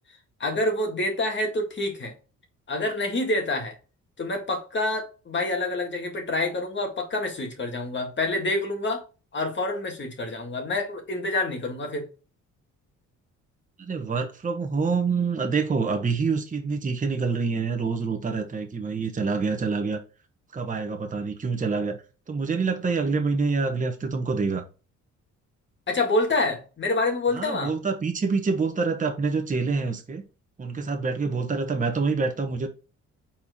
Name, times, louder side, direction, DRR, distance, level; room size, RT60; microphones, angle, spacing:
voice 1, 0.4-2.1 2.7-3.8 4.2-9.0 9.3-12.1 25.9-27.7, left 2 dB, 40° left, 2.0 m, -27 dB
voice 2, 13.8-20.0 20.5-22.0 22.3-24.6 27.3-30.2 30.6-32.7, right 4 dB, 25° right, 1.0 m, -26 dB
4.4 x 4.4 x 5.1 m
cardioid pair, 90°, 30 cm